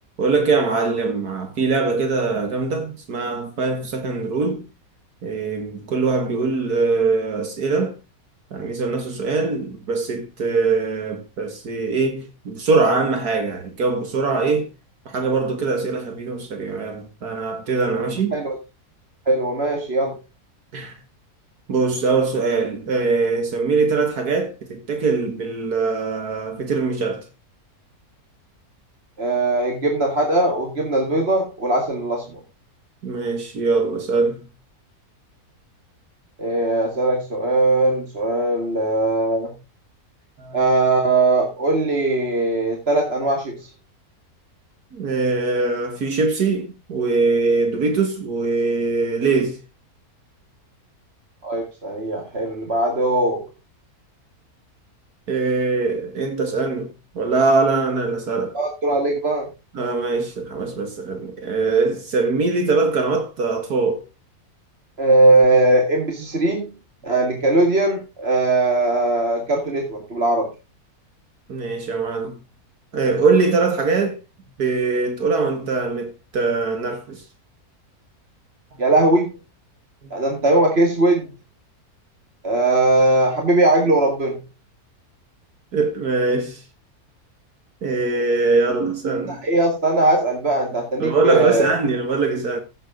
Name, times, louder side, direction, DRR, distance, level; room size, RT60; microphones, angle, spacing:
voice 1, 0.2-4.7 5.2-8.0 8.5-14.7 15.1-18.4 20.7-21.0 21.7-27.3 33.0-34.5 40.4-40.6 44.9-49.6 55.3-56.9 57.2-58.6 59.7-64.0 71.5-72.4 72.9-74.2 74.6-77.2 85.7-86.7 87.8-89.4 91.0-92.6, right 4 dB, 80° right, 2.3 m, -22 dB
voice 2, 19.3-20.1 29.2-32.4 36.4-39.5 40.5-43.7 51.4-53.4 58.5-59.5 65.0-66.7 67.0-70.5 78.8-79.4 80.1-81.3 82.4-84.4 89.3-91.7, right 2 dB, 40° right, 2.3 m, -19 dB
16.0 x 7.6 x 3.8 m
omnidirectional pair, 1.6 m